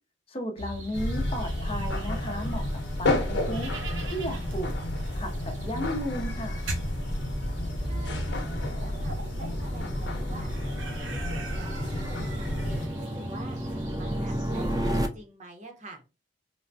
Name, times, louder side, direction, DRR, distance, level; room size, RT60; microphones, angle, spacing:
voice 1, 0.3-3.7 4.1-4.7 5.1-6.6, equal, 30° left, 0.6 m, -34 dB
sound 1, 0.6-15.0, right 1 dB, 90° right, 0.8 m, -40 dB
sound 2, 0.9-12.9, left 1 dB, 80° left, 0.8 m, -31 dB
sound 3, 4.1-15.1, right 1 dB, 20° right, 0.3 m, -35 dB
voice 2, 7.8-10.5 11.0-13.6 14.0-16.0, right 2 dB, 40° right, 0.8 m, -47 dB
3.3 x 2.1 x 2.6 m
head